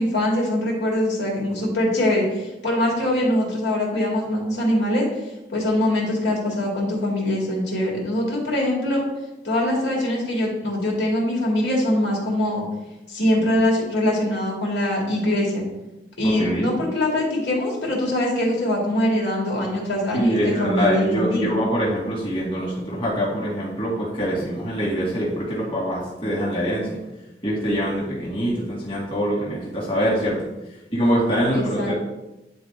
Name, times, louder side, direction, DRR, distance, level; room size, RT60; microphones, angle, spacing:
voice 1, 0.0-5.1 5.5-9.0 9.4-12.6 13.1-15.6 16.2-21.5 31.5-31.9, left 1 dB, 80° left, -3 dB, 2.5 m, -23 dB
voice 2, 16.2-16.7 20.1-27.0 27.4-30.4 30.9-31.9, equal, 30° left, -6 dB, 2.1 m, -24 dB
10.0 x 4.0 x 3.7 m, 0.96 s
head